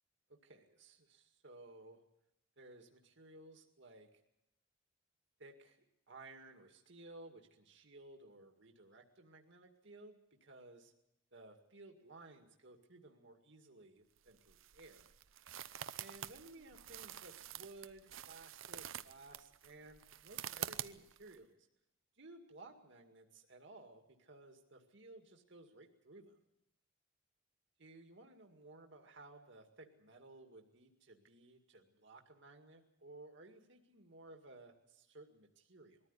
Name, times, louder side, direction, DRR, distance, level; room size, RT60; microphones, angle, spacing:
voice 1, 0.3-2.0 2.6-4.2 5.4-10.9 11.3-15.1 15.9-21.7 22.2-26.4 27.8-36.0, right 2 dB, 65° right, 4 dB, 2.2 m, -57 dB
sound 1, 14.2-21.4, right 10 dB, 80° right, 0.8 m, -47 dB
22.0 x 14.5 x 9.8 m, 0.83 s
head